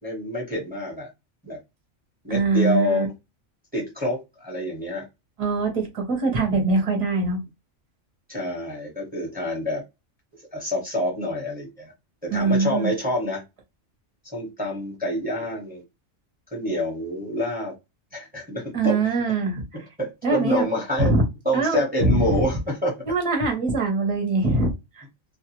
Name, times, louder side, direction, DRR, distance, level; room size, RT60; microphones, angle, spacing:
voice 1, 0.0-1.1 1.4-1.6 2.2-3.1 3.7-5.0 8.3-9.8 10.3-11.9 12.2-13.4 14.3-15.8 16.5-17.7 18.1-19.0 20.0-21.1 21.4-22.9, left 1 dB, 5° right, 1.1 m, -27 dB
voice 2, 2.3-3.1 5.4-7.4 12.3-12.9 18.7-19.6 20.2-20.6 21.0-21.2 21.5-22.5 23.1-25.0, right 3 dB, 30° right, 0.8 m, -22 dB
2.4 x 2.4 x 3.0 m
omnidirectional pair, 1.3 m